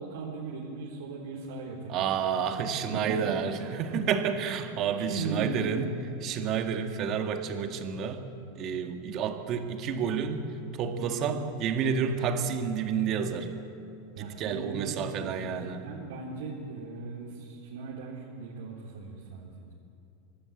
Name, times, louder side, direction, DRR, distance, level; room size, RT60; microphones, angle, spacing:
voice 1, 0.0-2.1 2.9-3.2 3.9-4.1 5.0-5.9 11.0-11.4 14.1-19.7, right 4 dB, 85° right, -5 dB, 3.6 m, -38 dB
voice 2, 1.9-5.9 6.2-8.2 8.6-10.4 10.7-13.5 14.2-15.8, right 7 dB, 40° right, 6 dB, 1.9 m, -30 dB
26.5 x 12.5 x 8.6 m, 2.6 s
supercardioid pair, 140°, 0 cm